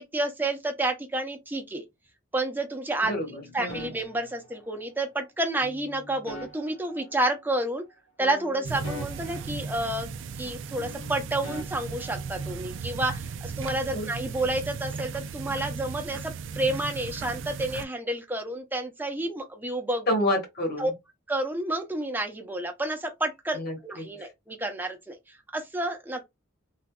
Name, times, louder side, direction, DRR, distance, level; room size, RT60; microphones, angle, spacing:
voice 1, 0.0-1.8 2.3-3.1 3.5-7.8 8.2-10.1 10.4-20.1 20.8-20.9 21.3-25.2 25.5-26.3, right 1 dB, 10° right, 0.7 m, -30 dB
sound 1, 3.0-5.0 5.6-7.9 8.2-10.5 10.8-12.8, left 1 dB, 70° left, 1.2 m, -45 dB
voice 2, 3.0-3.9 13.9-14.1 20.1-20.9 23.5-24.1, left 1 dB, 45° left, 1.2 m, -29 dB
sound 2, 8.6-17.8, right 5 dB, 60° right, 0.3 m, -36 dB
3.4 x 2.5 x 2.2 m
head